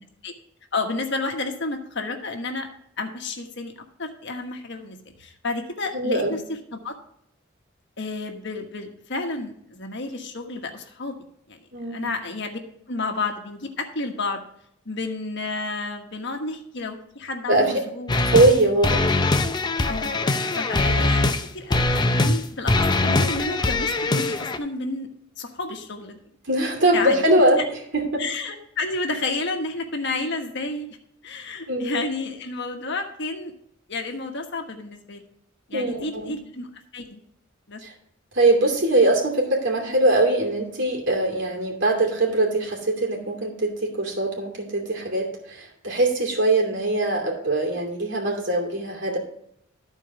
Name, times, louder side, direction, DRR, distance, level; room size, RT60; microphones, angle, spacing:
voice 1, 0.7-2.7 3.0-3.7 4.0-6.4 6.7-6.9 8.0-11.1 11.5-12.6 12.9-14.4 14.8-18.1 19.9-20.2 20.5-25.1 25.4-26.2 26.9-27.2 28.2-30.9 31.2-33.5 33.9-35.2 35.7-36.7 36.9-37.2 37.7-37.8, left 3 dB, 60° left, 4 dB, 1.3 m, -31 dB
voice 2, 5.9-6.4 11.7-12.1 17.5-17.8 18.2-19.2 20.8-21.2 26.4-27.6 27.9-28.2 31.7-32.1 35.7-36.4 37.8-37.9 38.3-49.2, right 2 dB, 60° right, 0 dB, 2.7 m, -22 dB
sound 1, 18.1-18.6 18.8-21.4 21.7-22.4 22.7-24.6, left 2 dB, 20° left, 0.6 m, -22 dB
13.5 x 4.6 x 4.8 m, 0.71 s
head